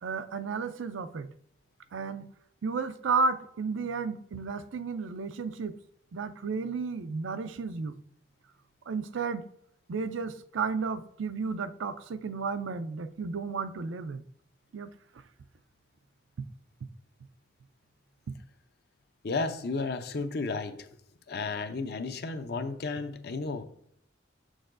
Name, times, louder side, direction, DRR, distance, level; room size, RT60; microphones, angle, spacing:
voice 1, 0.0-1.3 1.9-2.3 2.6-5.8 6.1-8.0 8.9-9.5 9.9-14.2 14.7-14.9, right 4 dB, 90° right, 0.5 m, -33 dB
voice 2, 19.2-20.9 21.3-23.6, left 3 dB, 55° left, 0.5 m, -33 dB
6.8 x 6.3 x 2.5 m
head